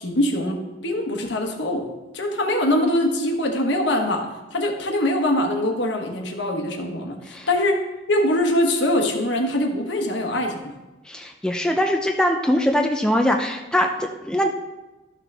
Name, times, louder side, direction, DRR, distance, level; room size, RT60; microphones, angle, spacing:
voice 1, 0.0-1.9 2.1-7.8 8.1-10.7, left 1 dB, 70° left, 2 dB, 1.3 m, -23 dB
voice 2, 11.1-14.5, equal, 5° left, 2 dB, 0.5 m, -22 dB
12.5 x 6.1 x 3.4 m, 1.1 s
head